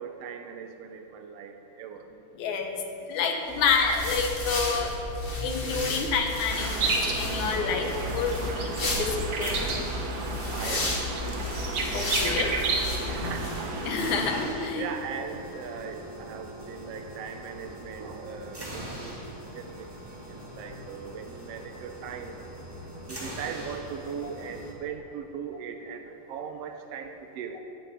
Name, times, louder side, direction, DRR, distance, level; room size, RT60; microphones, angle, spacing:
voice 1, 0.0-2.1 10.5-11.4 13.1-13.6 14.1-14.4 14.7-19.1 19.5-19.9 20.3-22.3 23.0-27.6, right 6 dB, 80° right, 5 dB, 1.4 m, -39 dB
voice 2, 2.4-2.8 3.1-4.9 5.4-9.1 9.4-9.6 10.6-10.7 11.9-12.5 13.8-14.9, left 5 dB, 70° left, 3 dB, 2.4 m, -28 dB
sound 1, 3.5-13.7, left 1 dB, 45° left, 0.7 m, -33 dB
sound 2, 6.5-14.5, right 3 dB, 55° right, 2.2 m, -32 dB
sound 3, 6.8-24.7, right 1 dB, 30° right, 0.4 m, -42 dB
12.0 x 6.4 x 9.0 m, 2.9 s
omnidirectional pair, 3.8 m